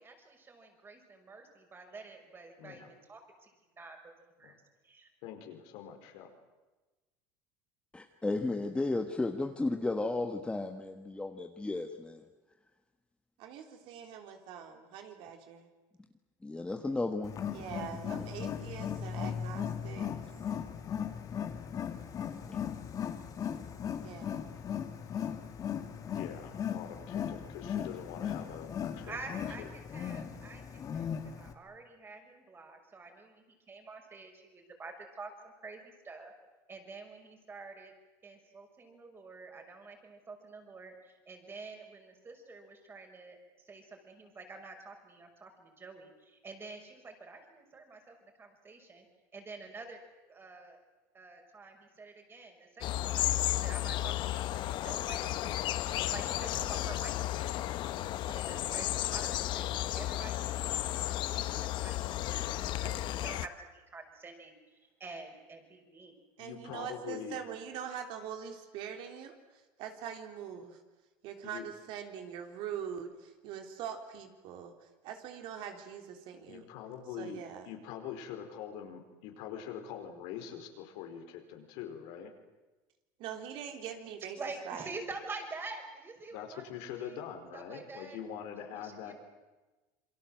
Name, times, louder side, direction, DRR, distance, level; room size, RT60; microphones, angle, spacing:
voice 1, 0.0-4.1 4.4-4.6 4.8-5.1 29.0-36.3 36.7-37.9 38.2-43.4 43.6-49.1 49.3-50.0 50.3-50.8 51.1-53.3 53.6-55.6 56.1-60.4 60.7-60.8 61.0-66.1 84.4-86.7 87.0-87.2 87.5-88.2 88.7-89.1, right 3 dB, 25° right, 3 dB, 6.0 m, -48 dB
voice 2, 5.2-6.3 26.1-30.0 66.4-67.4 71.5-71.7 76.5-82.3 86.3-89.1, left 8 dB, 75° left, 4 dB, 4.6 m, -44 dB
voice 3, 7.9-12.2 16.4-17.3 22.5-22.6, left 2 dB, 10° left, 5 dB, 1.5 m, -33 dB
voice 4, 13.4-15.7 17.5-20.1 24.0-24.5 66.4-70.8 71.2-76.7 77.2-77.7 83.2-84.4 84.7-84.9, right 8 dB, 65° right, 5 dB, 3.6 m, -43 dB
Wild animals, 17.2-31.5, left 8 dB, 40° left, 2.6 m, -38 dB
sound 1, 52.8-63.5, left 14 dB, 55° left, 1.0 m, -33 dB
27.5 x 23.0 x 7.8 m, 1.2 s
supercardioid pair, 115°, 10 cm